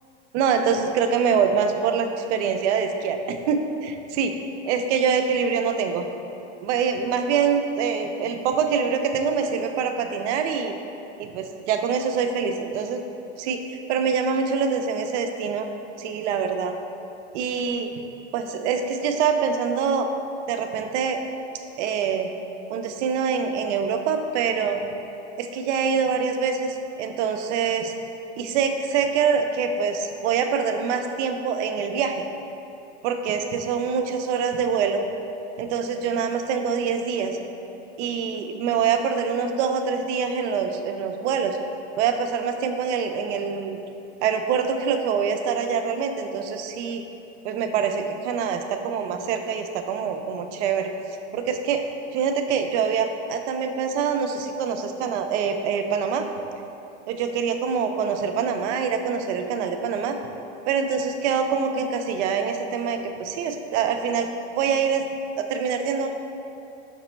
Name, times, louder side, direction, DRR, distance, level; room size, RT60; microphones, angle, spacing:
voice 1, 0.3-4.3 4.7-6.1 6.6-10.7 11.2-13.0 13.4-15.7 16.0-16.8 17.3-17.9 18.3-20.1 20.5-21.2 21.8-22.3 22.7-24.8 25.4-27.9 28.4-32.2 33.0-35.0 35.6-37.4 38.0-41.6 42.0-43.8 44.2-47.0 47.4-50.9 51.3-51.8 52.1-56.3 57.1-60.2 60.7-64.3 64.6-65.1 65.4-66.1, right 6 dB, 80° right, 6 dB, 0.5 m, -25 dB
5.9 x 2.0 x 4.2 m, 2.8 s
supercardioid pair, 150°, 35 cm